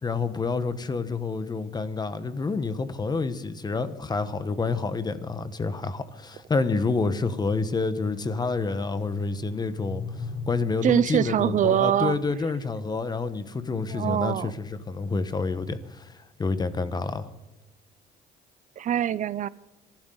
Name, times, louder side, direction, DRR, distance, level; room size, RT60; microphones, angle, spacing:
voice 1, 0.0-16.1 16.4-17.3, left 4 dB, 25° left, 1.2 m, -28 dB
sound 1, 7.9-12.3 12.6-12.8 13.8-15.5, left 4 dB, 75° left, 6.5 m, -41 dB
voice 2, 10.8-12.2 13.9-14.5 18.8-19.5, right 10 dB, 50° right, 0.5 m, -23 dB
25.5 x 12.0 x 3.9 m
cardioid pair, 110°, 17 cm